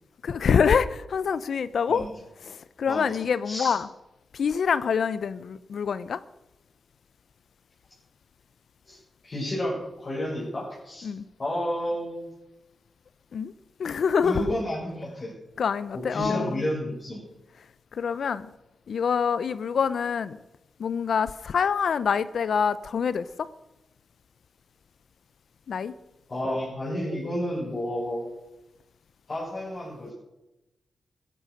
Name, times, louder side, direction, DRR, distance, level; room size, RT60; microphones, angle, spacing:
voice 1, 0.2-2.0 2.4-3.9 4.3-6.2 11.0-11.2 13.3-13.5 13.8-14.4 15.6-16.6 17.9-18.5 18.9-20.4 20.8-23.5 25.7-25.9, left 6 dB, 70° left, 16 dB, 0.6 m, -26 dB
voice 2, 9.2-11.1 11.4-12.3 14.2-15.3 15.9-17.3 26.3-28.3 29.3-30.1, equal, 40° left, -6 dB, 6.8 m, -31 dB
15.0 x 11.5 x 6.5 m, 0.96 s
cardioid pair, 70°, 0 cm